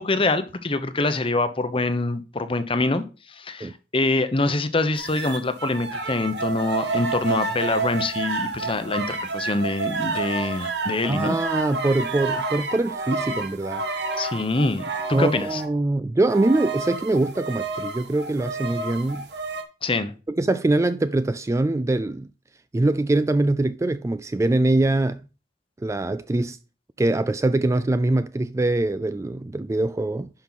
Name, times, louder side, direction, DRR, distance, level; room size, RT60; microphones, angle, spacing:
voice 1, 0.0-11.4 14.2-15.6 19.8-20.1, left 2 dB, 30° left, 0.9 m, -25 dB
sound 1, 4.9-15.7 16.3-19.6, right 3 dB, 75° right, 1.5 m, -30 dB
voice 2, 11.0-13.8 15.1-19.3 20.3-22.3 22.7-25.2 25.8-26.6 27.0-30.3, right 2 dB, 15° right, 0.3 m, -23 dB
10.5 x 5.5 x 4.1 m
head